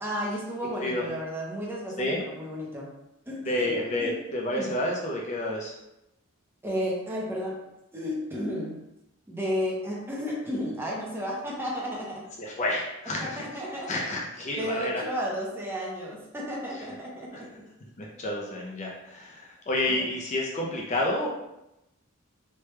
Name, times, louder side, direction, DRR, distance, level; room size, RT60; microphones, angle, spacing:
voice 1, 0.0-2.9 3.3-4.1 4.5-4.7 6.6-7.6 7.9-8.8 9.3-12.2 13.2-14.0 14.6-17.5 20.0-20.1, equal, 10° right, -4 dB, 0.6 m, -33 dB
voice 2, 3.5-5.7 12.4-15.0 18.0-21.3, left 1 dB, 35° left, -2 dB, 0.4 m, -30 dB
3.2 x 2.2 x 3.0 m, 0.88 s
head